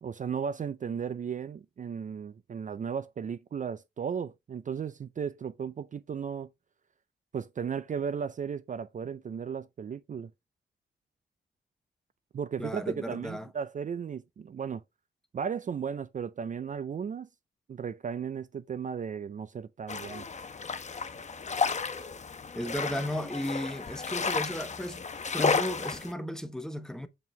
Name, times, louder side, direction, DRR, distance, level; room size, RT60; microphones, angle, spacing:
voice 1, 0.0-6.5 7.3-10.3 12.3-14.8 15.3-17.3 17.7-20.2, right 7 dB, 40° right, 0.4 m, -35 dB
voice 2, 12.6-13.5 22.5-27.1, equal, 5° left, 0.9 m, -35 dB
sound 1, 19.9-26.1, left 5 dB, 40° left, 0.9 m, -32 dB
7.5 x 4.7 x 3.1 m
cardioid pair, 95°, 19 cm